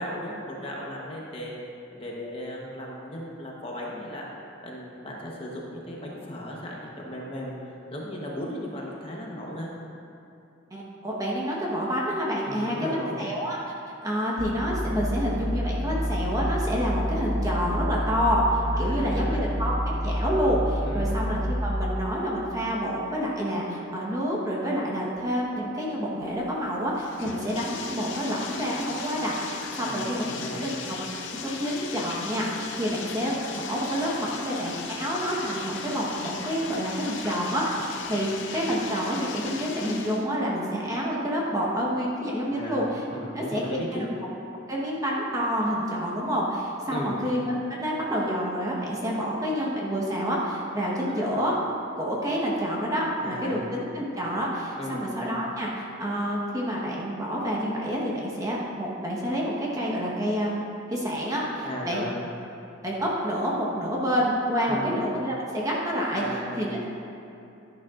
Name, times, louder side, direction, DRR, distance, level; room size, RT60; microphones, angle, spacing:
voice 1, 0.0-1.5 1.9-4.2 4.6-7.5 7.9-9.7 12.4-13.3 18.7-19.4 20.8-21.1 29.8-30.1 30.4-30.7 42.5-44.1 46.9-47.2 51.1-51.3 53.2-53.6 54.8-55.0 61.6-62.2 64.6-64.9 66.1-66.5, equal, 25° left, -3 dB, 1.0 m, -36 dB
voice 2, 10.7-13.6 14.0-30.8 31.4-43.0 43.5-44.1 44.7-51.5 52.0-62.0 62.8-66.2 66.6-67.0, equal, 15° right, -4 dB, 1.2 m, -28 dB
sound 1, 14.4-21.7, equal, 10° left, 1.7 m, -28 dB
Bathtub (filling or washing), 26.2-40.3, left 5 dB, 60° left, 0.6 m, -37 dB
11.0 x 10.0 x 2.5 m, 2.9 s
head